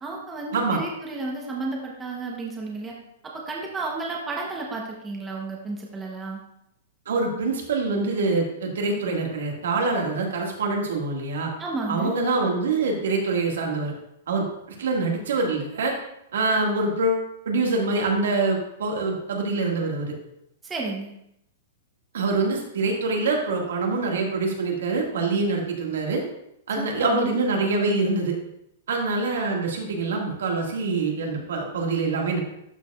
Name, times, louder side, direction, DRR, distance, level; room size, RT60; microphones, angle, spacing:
voice 1, 0.0-3.0 3.3-6.4 11.6-12.1 20.6-21.1 26.8-27.3, right 3 dB, 10° right, -2 dB, 0.8 m, -32 dB
voice 2, 7.0-11.5 11.9-13.9 14.3-15.9 16.3-20.1 22.1-26.2 26.7-28.4 28.9-32.4, right 3 dB, 90° right, 1 dB, 1.8 m, -25 dB
12.0 x 4.8 x 2.3 m, 0.78 s
supercardioid pair, 175°, 0 cm